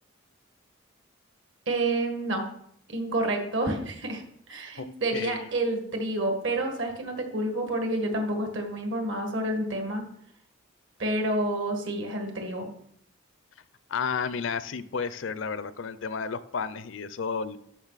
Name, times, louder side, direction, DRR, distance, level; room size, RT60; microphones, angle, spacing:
voice 1, 1.7-2.4 2.9-4.2 4.5-10.0 11.0-12.7, right 1 dB, 65° right, 3 dB, 1.8 m, -29 dB
voice 2, 5.1-5.5 13.9-17.6, left 5 dB, 65° left, 15 dB, 0.5 m, -32 dB
12.5 x 5.8 x 4.1 m, 0.70 s
head